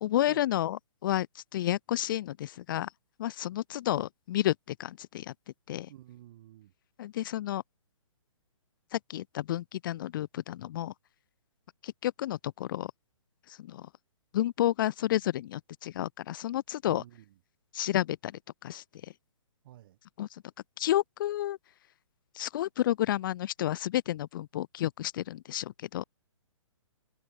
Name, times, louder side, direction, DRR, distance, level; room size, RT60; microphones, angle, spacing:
voice 1, 0.0-2.9 3.2-5.3 5.7-5.9 7.0-7.6 8.9-10.9 11.8-12.9 13.5-13.9 14.3-17.0 17.7-18.3 18.6-19.1 20.2-20.4 20.8-21.6 22.3-26.0, left 13 dB, 40° left, 0.7 m, -31 dB
voice 2, 5.9-6.7 16.8-17.4 19.6-20.0, right 14 dB, 40° right, 3.2 m, -51 dB
hypercardioid pair, 150°, 17 cm